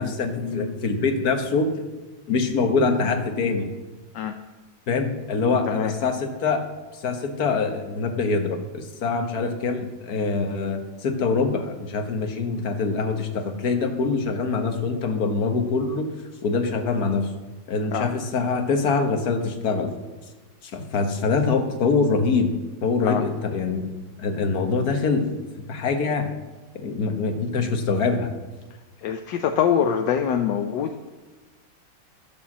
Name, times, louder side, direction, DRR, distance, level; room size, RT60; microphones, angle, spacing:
voice 1, 0.0-1.7 2.3-3.7 4.9-6.6 6.9-16.1 16.4-17.3 17.7-19.9 20.6-22.5 22.8-23.9 24.2-25.3 25.7-26.3 26.7-28.3, left 4 dB, 50° left, 5 dB, 1.6 m, -24 dB
voice 2, 29.0-31.1, left 8 dB, 70° left, 5 dB, 1.1 m, -24 dB
12.5 x 6.9 x 7.3 m, 1.2 s
omnidirectional pair, 2.3 m